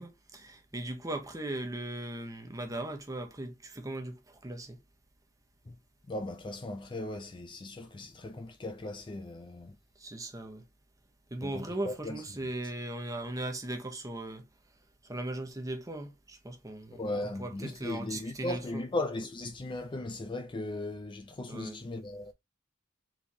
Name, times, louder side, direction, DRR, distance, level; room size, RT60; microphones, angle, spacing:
voice 1, 0.0-4.8 10.0-10.6 11.3-14.4 15.0-17.0 17.4-18.8 21.5-21.8, right 1 dB, 15° right, 0.9 m, -38 dB
voice 2, 6.1-9.8 11.4-12.2 16.9-22.3, left 2 dB, 25° left, 0.4 m, -37 dB
4.5 x 3.5 x 2.7 m
head